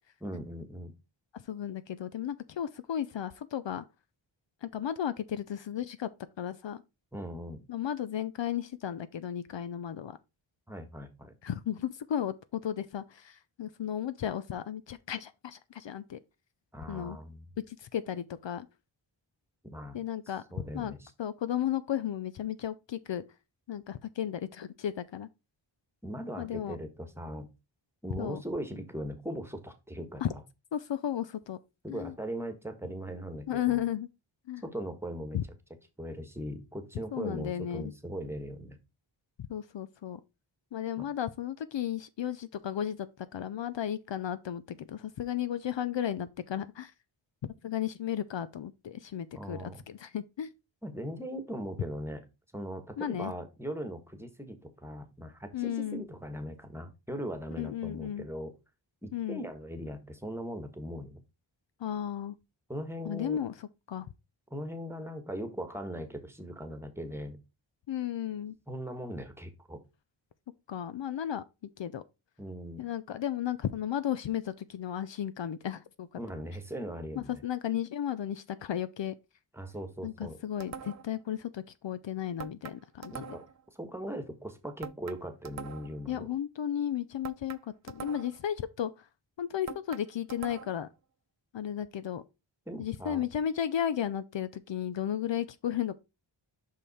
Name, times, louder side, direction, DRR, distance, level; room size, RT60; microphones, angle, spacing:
voice 1, 0.2-0.9 7.1-7.6 10.7-11.3 16.7-17.4 19.6-20.0 20.5-21.1 26.0-27.5 28.0-30.4 31.8-33.8 34.6-35.4 36.0-38.8 41.0-41.1 49.3-49.8 50.8-52.3 52.5-58.5 59.0-61.2 62.7-63.4 64.5-67.4 68.7-69.8 72.4-72.8 76.2-77.4 79.5-80.4 83.1-83.4 83.7-86.3 92.7-93.2, equal, 5° right, 1.4 m, -39 dB
voice 2, 1.3-3.8 4.6-6.1 6.4-6.8 7.7-10.2 11.4-16.2 16.9-17.2 17.7-18.7 19.9-20.4 20.7-20.9 21.2-23.2 23.7-25.3 26.4-26.8 28.1-28.4 30.2-30.3 30.7-31.6 31.9-32.1 33.5-34.1 34.5-34.6 35.3-35.4 37.1-37.8 39.5-40.2 40.7-46.9 47.6-50.5 53.0-53.3 55.5-56.0 57.6-58.3 59.1-59.4 61.8-62.4 63.0-63.5 63.9-64.1 67.9-68.6 70.7-71.4 71.8-72.0 72.8-76.1 77.1-79.1 80.0-83.3 86.1-89.1 89.4-90.9 91.5-92.2 92.8-95.9, left 10 dB, 65° left, 0.6 m, -34 dB
sound 1, 80.6-81.2 82.4-83.6 84.8-86.0 87.2-88.5 89.7-90.9, right 7 dB, 40° right, 0.4 m, -44 dB
5.7 x 5.2 x 4.2 m
cardioid pair, 60°, 48 cm